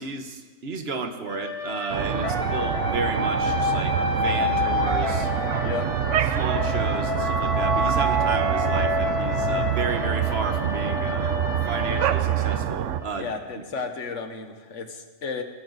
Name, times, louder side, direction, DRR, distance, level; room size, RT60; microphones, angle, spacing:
voice 1, 0.0-5.3 6.2-11.3 11.7-13.6, right 4 dB, 55° right, 7 dB, 1.4 m, -32 dB
sound 1, 1.2-13.1, left 4 dB, 25° left, 1.2 m, -29 dB
sound 2, 1.9-13.0, right 10 dB, 75° right, 1.0 m, -26 dB
voice 2, 13.2-15.4, left 5 dB, 70° left, 6 dB, 1.6 m, -33 dB
22.0 x 13.0 x 4.1 m, 1.3 s
omnidirectional pair, 1.3 m